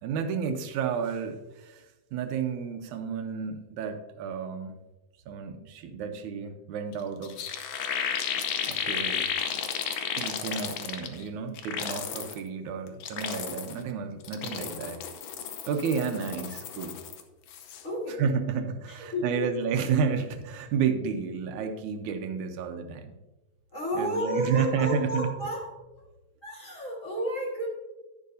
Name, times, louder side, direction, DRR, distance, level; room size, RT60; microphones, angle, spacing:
voice 1, 0.0-4.8 5.3-7.5 8.7-9.3 10.2-15.0 15.7-17.0 18.2-23.2 24.0-25.3, right 6 dB, 85° right, 6 dB, 2.2 m, -31 dB
sound 1, 6.9-7.0 7.2-11.2 11.6-12.4 12.9-13.8 14.2-17.2 17.5-17.8, left 8 dB, 70° left, 1.8 m, -33 dB
voice 2, 17.8-18.2 18.9-19.5 23.7-25.7 26.4-27.7, equal, 30° left, -2 dB, 1.7 m, -31 dB
11.0 x 10.5 x 2.7 m, 1.1 s
omnidirectional pair, 3.4 m